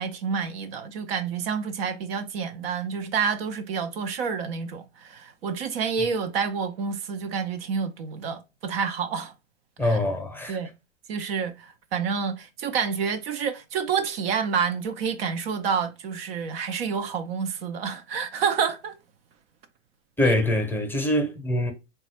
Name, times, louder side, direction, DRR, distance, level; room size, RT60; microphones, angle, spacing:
voice 1, 0.0-9.3 9.8-10.0 10.5-10.7 11.1-18.9 20.2-20.4, right 6 dB, 55° right, 0.6 m, -28 dB
voice 2, 9.8-10.6 20.2-21.7, left 1 dB, 5° left, 0.8 m, -24 dB
3.8 x 2.3 x 4.2 m
figure-of-eight pair, 95°, 36 cm